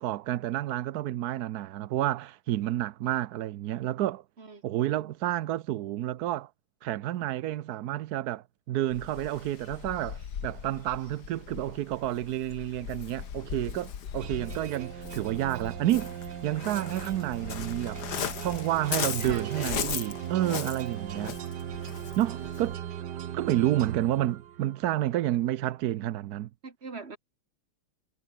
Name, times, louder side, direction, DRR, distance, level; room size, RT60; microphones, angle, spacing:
voice 1, 0.0-4.2 4.6-6.5 6.8-18.0 18.4-21.4 22.2-22.8 23.3-26.5, right 13 dB, 80° right, 0.8 m, -30 dB
Waves surf, 8.9-22.8, left 8 dB, 50° left, 1.9 m, -38 dB
sound 1, 14.2-24.9, right 10 dB, 60° right, 1.5 m, -38 dB
voice 2, 19.2-20.0 26.6-27.2, right 4 dB, 30° right, 2.5 m, -41 dB
omnidirectional pair, 2.4 m